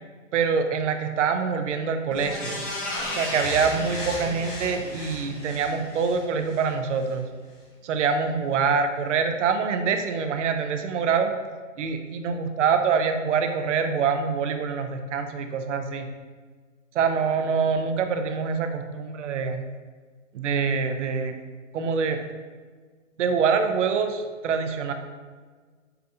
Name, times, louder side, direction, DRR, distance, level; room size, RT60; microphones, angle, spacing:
voice 1, 0.3-2.7 3.1-7.3 7.8-11.3 11.8-16.1 16.9-19.6 20.3-21.3 21.7-22.2 23.2-24.9, right 5 dB, 65° right, 7 dB, 0.5 m, -25 dB
sound 1, 2.1-6.7 7.0-7.1, left 1 dB, 20° left, 0.5 m, -34 dB
5.6 x 2.4 x 2.4 m, 1.5 s
hypercardioid pair, 135°, 39 cm